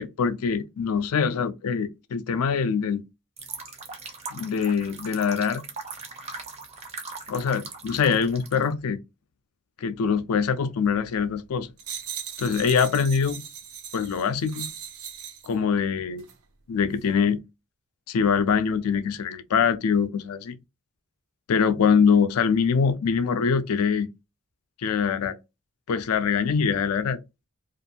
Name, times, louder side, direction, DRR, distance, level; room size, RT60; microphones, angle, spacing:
voice 1, 0.0-3.0 4.3-5.6 7.3-9.0 9.8-11.7 12.4-13.4 13.9-14.7 15.4-16.2 16.7-17.4 18.1-20.6 21.5-24.1 24.8-25.4 25.9-27.2, left 6 dB, 80° left, 0.4 m, -23 dB
sound 1, 3.4-8.7, right 4 dB, 30° right, 0.5 m, -40 dB
sound 2, 11.8-15.5 16.2-16.4, right 8 dB, 85° right, 0.6 m, -38 dB
2.5 x 2.4 x 2.7 m
head